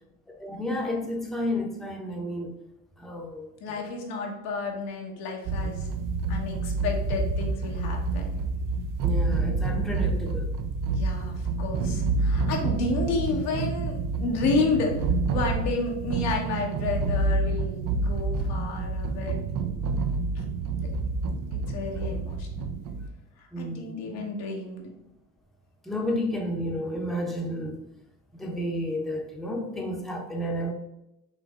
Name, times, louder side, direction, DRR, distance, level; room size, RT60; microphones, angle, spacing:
voice 1, 0.3-2.6 3.0-3.9 9.0-10.5 21.9-22.2 23.5-24.3 25.8-27.8 28.3-30.7, equal, ahead, 0.8 m, -32 dB
voice 2, 3.6-5.9 6.3-8.4 10.9-14.9 15.2-19.4 20.3-20.4 21.7-22.7 23.4-24.9, left 3 dB, 80° left, 1.2 m, -31 dB
sound 1, 5.5-23.1, right 3 dB, 55° right, 0.6 m, -28 dB
5.0 x 2.9 x 3.6 m
supercardioid pair, 80°, 39 cm